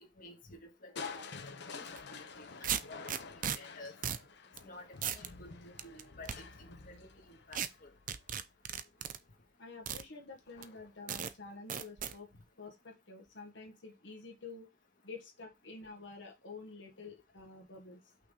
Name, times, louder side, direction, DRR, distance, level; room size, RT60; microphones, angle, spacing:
voice 1, 0.2-1.2 1.7-3.9 4.6-6.3 6.6-7.9, left 2 dB, 50° left, 1.7 m, -53 dB
voice 2, 1.0-1.3 9.6-12.3 12.6-14.7 15.0-18.0, left 4 dB, 90° left, 1.6 m, -49 dB
Crushing, 1.0-8.9 10.5-11.0 11.5-11.6, left 4 dB, 65° left, 0.9 m, -50 dB
sound 1, 1.9-2.0 2.6-3.6 4.0-4.3 4.6-4.7 5.0-5.3 5.8-6.4 7.5-7.7 8.1-9.2 9.9-10.0 10.6-10.7 11.1-11.3 11.7-12.1, right 8 dB, 50° right, 0.6 m, -36 dB
5.8 x 3.5 x 5.5 m
head